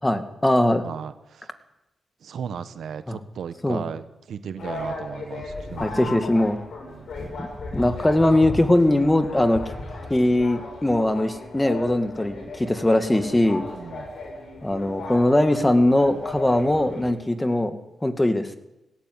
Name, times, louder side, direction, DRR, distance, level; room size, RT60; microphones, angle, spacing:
voice 1, 0.0-0.8 3.1-3.2 3.6-3.8 5.8-6.6 7.4-7.5 7.7-9.6 10.1-13.6 14.6-17.7 18.0-18.5, left 1 dB, 15° left, 9 dB, 2.2 m, -21 dB
voice 2, 0.8-1.5 2.2-6.2 6.9-7.1 13.7-14.1, right 7 dB, 80° right, 12 dB, 1.3 m, -36 dB
sound 1, 4.6-17.1, left 2 dB, 70° left, 6.1 m, -36 dB
17.5 x 15.5 x 9.7 m, 0.95 s
cardioid pair, 65°, 0 cm